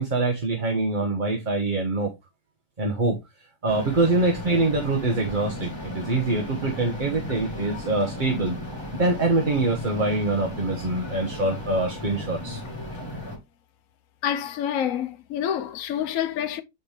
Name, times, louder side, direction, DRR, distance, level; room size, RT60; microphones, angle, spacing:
voice 1, 0.0-2.1 2.8-3.2 3.6-8.6 8.9-12.6, right 2 dB, 35° right, 1.2 m, -24 dB
sound 1, 3.7-13.4, left 1 dB, 15° left, 2.1 m, -36 dB
voice 2, 14.2-16.6, left 9 dB, 65° left, 1.0 m, -27 dB
8.2 x 4.4 x 3.3 m
omnidirectional pair, 1.7 m